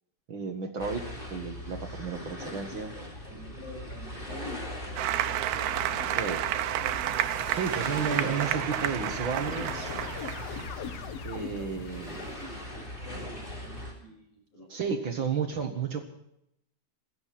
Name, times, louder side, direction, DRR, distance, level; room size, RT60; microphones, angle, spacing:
voice 1, 0.3-1.0 1.3-2.9 6.1-6.4 7.5-9.9 11.2-12.2 14.7-16.0, right 6 dB, 60° right, 5 dB, 1.3 m, -32 dB
sound 1, 0.8-13.9, left 1 dB, 15° left, 3.4 m, -40 dB
voice 2, 2.4-5.9 11.0-15.0, left 1 dB, 60° left, 1 dB, 7.9 m, -48 dB
Applause, 5.0-10.6, right 12 dB, 80° right, 2.8 m, -30 dB
sound 2, 5.6-12.6, left 8 dB, 80° left, 1.4 m, -43 dB
16.0 x 14.5 x 5.9 m, 0.78 s
omnidirectional pair, 4.5 m